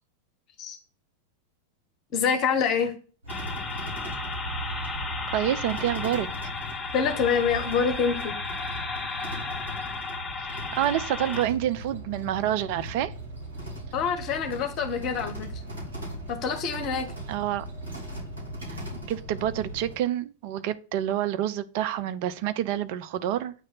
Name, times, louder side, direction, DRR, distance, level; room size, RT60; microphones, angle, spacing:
voice 1, 2.1-2.9 6.9-8.3 13.9-15.5 16.3-17.1, left 6 dB, 35° left, 1.0 m, -26 dB
sound 1, 3.2-19.9, right 1 dB, 70° right, 2.9 m, -38 dB
sound 2, 3.3-11.4, left 4 dB, 10° left, 1.1 m, -34 dB
voice 2, 5.3-6.3 10.5-13.1 17.3-17.6 18.7-23.5, right 11 dB, 45° right, 0.5 m, -28 dB
8.5 x 3.2 x 5.4 m
figure-of-eight pair, 90°, 0 cm